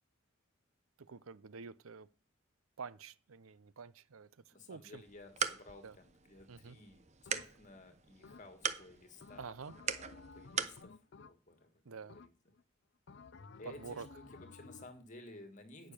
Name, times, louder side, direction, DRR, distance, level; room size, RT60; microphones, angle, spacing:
voice 1, 1.0-2.1 2.8-5.0 5.8-5.9 6.5-6.8 9.4-9.7 11.8-12.2 13.6-14.1 15.8-15.9, right 5 dB, 85° right, 0.6 m, -48 dB
voice 2, 4.5-11.7 12.0-12.3 13.6-15.9, left 2 dB, 35° left, 2.1 m, -55 dB
sound 1, 5.0-10.8, right 7 dB, 35° right, 0.8 m, -41 dB
sound 2, 7.3-7.8 8.2-8.8 9.2-11.7 12.1-12.6 13.1-15.0, left 4 dB, 55° left, 0.6 m, -55 dB
9.7 x 6.6 x 9.0 m
head